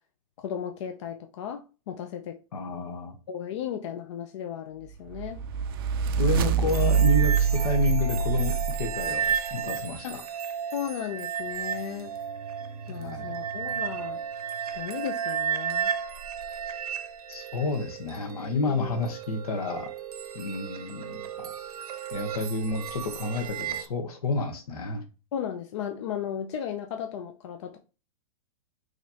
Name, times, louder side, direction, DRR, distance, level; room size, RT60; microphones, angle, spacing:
voice 1, 0.4-2.4 3.3-5.4 10.0-10.2 10.7-12.2 12.9-14.2 14.7-15.9 18.6-19.0 25.3-27.8, left 9 dB, 50° left, 0.5 m, -35 dB
voice 2, 2.5-3.1 6.2-10.2 12.9-13.3 17.3-19.9 20.3-21.5 22.1-25.0, left 3 dB, 80° left, 1.2 m, -30 dB
sound 1, 5.1-9.4, right 7 dB, 40° right, 0.4 m, -25 dB
sound 2, 6.7-23.9, right 8 dB, 80° right, 0.7 m, -34 dB
5.0 x 3.1 x 2.8 m
hypercardioid pair, 165°, 19 cm